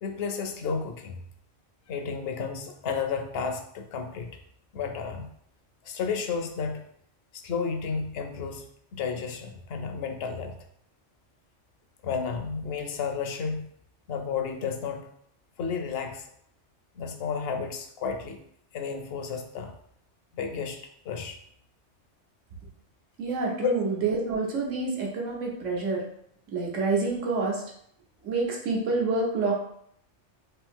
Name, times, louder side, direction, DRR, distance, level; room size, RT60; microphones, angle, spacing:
voice 1, 0.0-1.2 1.9-4.3 4.7-5.3 5.8-6.8 7.3-8.7 8.9-10.5 12.0-13.7 14.1-15.1 15.6-16.3 17.0-18.4 18.7-19.7 20.3-21.4 23.6-23.7, left 5 dB, 65° left, 5 dB, 0.7 m, -32 dB
voice 2, 23.2-26.0 26.5-27.6 28.2-29.5, right 3 dB, 85° right, -2 dB, 1.3 m, -27 dB
3.4 x 2.7 x 3.5 m, 0.69 s
omnidirectional pair, 1.3 m